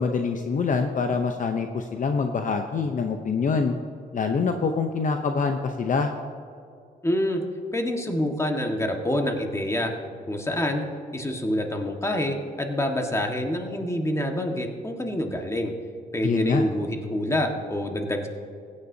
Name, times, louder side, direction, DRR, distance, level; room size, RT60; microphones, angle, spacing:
voice 1, 0.0-3.7 4.1-6.1 16.2-16.7, left 5 dB, 50° left, 6 dB, 0.7 m, -25 dB
voice 2, 7.0-7.4 7.7-9.9 10.3-10.8 11.1-15.7 16.1-18.3, left 1 dB, 15° left, 3 dB, 1.5 m, -26 dB
16.5 x 9.8 x 2.7 m, 2.5 s
cardioid pair, 85°, 18 cm